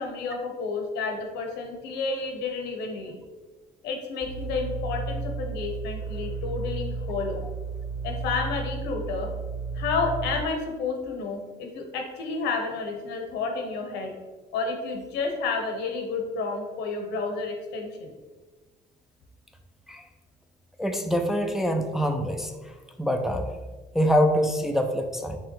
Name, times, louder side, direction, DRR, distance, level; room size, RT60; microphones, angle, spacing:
voice 1, 0.0-3.1 3.8-7.4 8.0-9.3 9.7-14.1 14.5-18.1, left 4 dB, 90° left, 3 dB, 0.8 m, -30 dB
sound 1, 4.2-10.4, right 3 dB, 15° left, 0.7 m, -33 dB
voice 2, 20.8-23.5 23.9-25.4, equal, ahead, 4 dB, 0.3 m, -25 dB
4.8 x 3.5 x 3.0 m, 1.3 s
cardioid pair, 110°, 17 cm